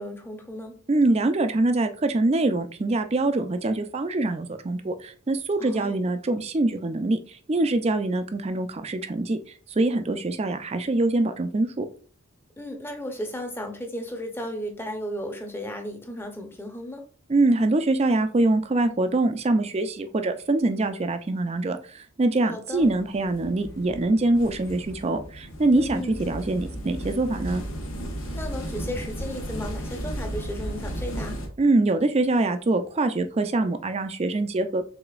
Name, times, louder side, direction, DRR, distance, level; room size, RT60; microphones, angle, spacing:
voice 1, 0.0-0.8 5.6-6.0 12.6-17.1 22.5-22.9 25.8-26.2 28.1-31.4, equal, 10° left, 0.7 m, -35 dB
voice 2, 0.9-9.4 9.7-11.9 17.3-27.6 31.6-34.8, right 2 dB, 30° right, 0.4 m, -24 dB
sound 1, 22.7-31.5, equal, 65° left, 1.0 m, -35 dB
4.9 x 3.4 x 2.4 m
head